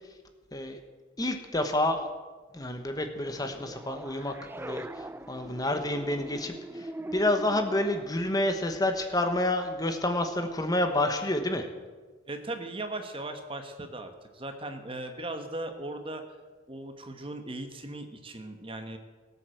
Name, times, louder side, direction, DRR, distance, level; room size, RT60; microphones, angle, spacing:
voice 1, 1.2-2.1 2.5-11.7, left 1 dB, 20° left, 6 dB, 1.1 m, -29 dB
sound 1, 3.0-8.0, right 1 dB, 10° right, 0.4 m, -42 dB
voice 2, 12.3-16.2 16.7-19.0, right 2 dB, 30° right, 6 dB, 1.3 m, -38 dB
18.0 x 8.2 x 7.7 m, 1.3 s
head